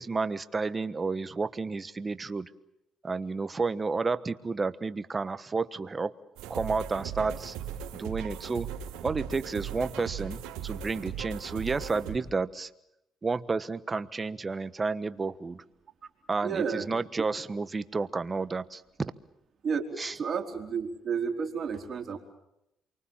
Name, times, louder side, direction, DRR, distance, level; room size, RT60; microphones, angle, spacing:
voice 1, 0.0-2.5 3.0-6.1 6.5-7.5 7.9-8.7 9.0-12.7 13.2-15.6 16.3-19.1 20.0-20.1, right 4 dB, 30° right, 14 dB, 1.3 m, -31 dB
sound 1, 6.4-12.2, right 9 dB, 90° right, 3.4 m, -38 dB
voice 2, 16.4-16.9 17.2-17.3 19.6-22.2, right 6 dB, 45° right, 3 dB, 4.4 m, -31 dB
28.0 x 24.0 x 7.4 m, 0.85 s
cardioid pair, 85°, 0 cm